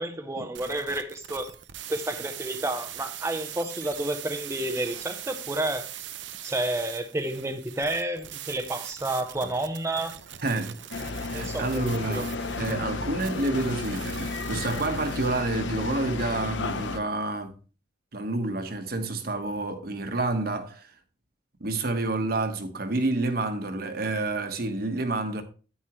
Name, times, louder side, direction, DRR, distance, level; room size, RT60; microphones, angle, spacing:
voice 1, 0.0-1.5 1.9-5.9 6.4-10.2 10.5-10.6 11.3-12.3, right 1 dB, 15° right, 0.6 m, -30 dB
sound 1, 0.5-15.4, right 11 dB, 85° right, 0.8 m, -41 dB
voice 2, 10.4-10.8 11.3-12.3 12.6-17.5 18.1-20.9 21.6-25.4, right 2 dB, 55° right, 1.3 m, -29 dB
sound 2, 10.9-17.0, left 3 dB, 90° left, 0.8 m, -33 dB
9.8 x 9.1 x 3.0 m
head